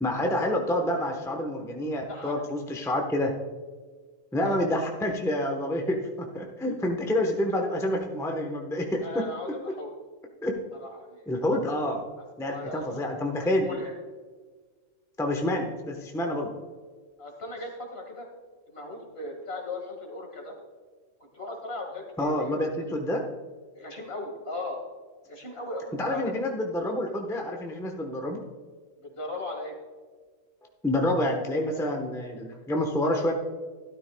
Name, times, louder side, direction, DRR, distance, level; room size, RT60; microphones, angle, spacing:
voice 1, 0.0-3.3 4.3-9.2 10.4-10.6 11.3-12.0 12.4-13.8 15.2-16.5 22.2-23.2 26.0-28.4 30.8-33.3, left 1 dB, 5° left, 2 dB, 0.9 m, -28 dB
voice 2, 9.0-9.9 10.7-11.3 12.2-12.8 13.4-13.9 17.2-18.3 18.7-20.6 21.3-22.9 23.7-24.8 25.3-26.3 29.0-29.7, left 2 dB, 50° left, 1 dB, 2.1 m, -38 dB
13.0 x 12.5 x 2.3 m, 1.5 s
omnidirectional pair, 1.3 m